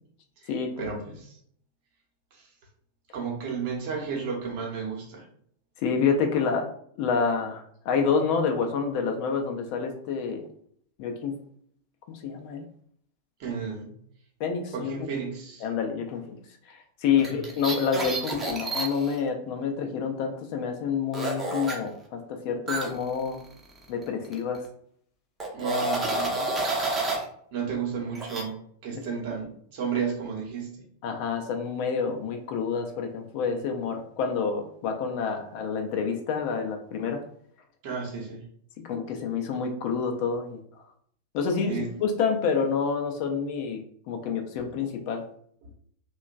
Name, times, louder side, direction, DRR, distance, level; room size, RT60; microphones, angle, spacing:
voice 1, 0.8-1.4 2.3-2.5 3.1-5.3 13.4-13.9 14.7-15.6 17.2-17.4 25.5-26.5 27.5-30.8 37.8-38.4 41.7-42.0, right 5 dB, 50° right, 0 dB, 0.8 m, -33 dB
voice 2, 5.8-6.7 7.0-10.4 11.0-11.4 12.1-12.7 14.4-14.9 15.6-16.4 16.7-23.4 23.9-24.6 28.9-29.0 29.9-30.1 31.0-37.2 38.8-40.6 41.3-45.3, left 6 dB, 45° left, 4 dB, 0.4 m, -28 dB
sound 1, 17.2-19.2 21.1-21.8 22.7-24.1 24.3-24.6 25.4-27.2 28.1-28.4, right 2 dB, 15° right, 0.6 m, -30 dB
2.9 x 2.2 x 2.4 m, 0.64 s
figure-of-eight pair, 90°, 0 cm